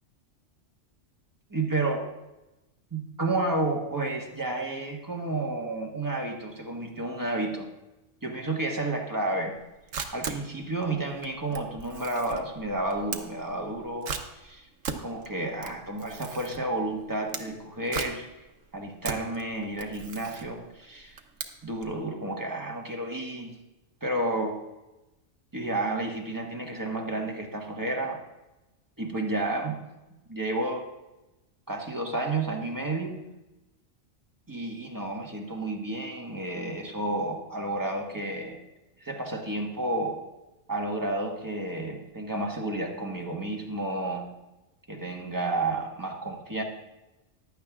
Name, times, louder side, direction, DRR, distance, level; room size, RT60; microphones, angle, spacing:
voice 1, 1.5-2.0 2.9-7.7 8.2-9.6 10.1-14.7 15.0-18.3 18.7-21.1 21.6-23.5 24.0-24.6 25.5-28.2 29.0-29.8 30.3-30.9 31.7-33.2 34.5-38.6 39.0-40.2 40.7-44.3 44.9-46.6, right 2 dB, 15° right, 0 dB, 1.4 m, -31 dB
Camera, 9.5-22.0, right 6 dB, 85° right, 1.2 m, -39 dB
15.0 x 10.5 x 2.4 m, 1.0 s
omnidirectional pair, 1.3 m